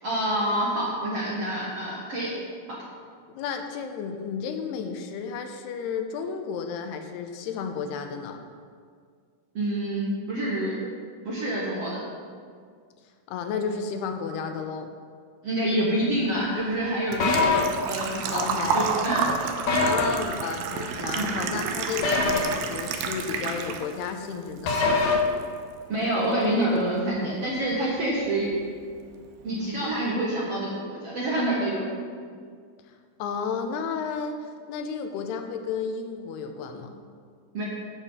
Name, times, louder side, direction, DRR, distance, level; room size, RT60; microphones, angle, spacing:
voice 1, 0.0-2.3 2.7-2.8 9.5-10.8 11.3-12.0 15.4-17.5 17.9-18.5 18.7-19.3 21.1-21.3 25.9-28.5 29.4-31.9 37.5-37.6, right 1 dB, 55° right, -6 dB, 1.8 m, -27 dB
voice 2, 3.3-8.4 13.3-14.9 18.3-18.8 19.8-24.9 33.2-36.9, left 6 dB, 80° left, 6 dB, 2.8 m, -32 dB
Engine / Trickle dribble / Fill (with liquid), 16.2-24.1 24.4-25.4 25.7-25.8 27.7-27.8 28.0-28.3 28.7-28.8 29.0-29.1, right 5 dB, 80° right, 2.3 m, -30 dB
sound 1, 17.2-17.6 19.7-20.0 22.0-22.5 24.6-25.1, left 4 dB, 65° left, 2.2 m, -22 dB
9.1 x 8.0 x 5.6 m, 2.1 s
omnidirectional pair, 4.6 m